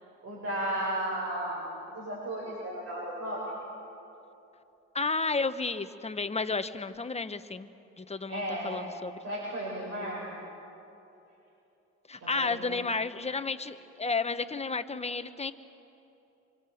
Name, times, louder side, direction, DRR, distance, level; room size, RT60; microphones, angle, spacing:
voice 1, 0.2-1.6 1.9-3.5 8.3-8.8 9.2-10.3 12.1-12.7, right 1 dB, 55° right, -6 dB, 7.8 m, -34 dB
voice 2, 4.9-7.7 8.0-9.2 12.1-15.5, left 4 dB, 20° left, 10 dB, 1.0 m, -32 dB
26.5 x 24.5 x 7.8 m, 2.9 s
cardioid pair, 90°, 30 cm